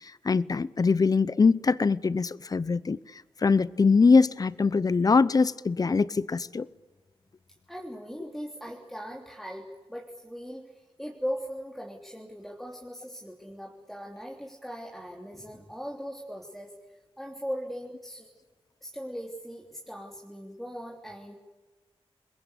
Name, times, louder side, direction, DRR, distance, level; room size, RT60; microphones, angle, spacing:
voice 1, 0.0-3.0 3.4-6.7, left 4 dB, 35° left, 0.8 m, -23 dB
voice 2, 7.7-16.7 17.2-18.3 18.8-21.3, equal, ahead, 3.3 m, -39 dB
29.0 x 21.5 x 8.4 m
wide cardioid pair, 95°, 10 cm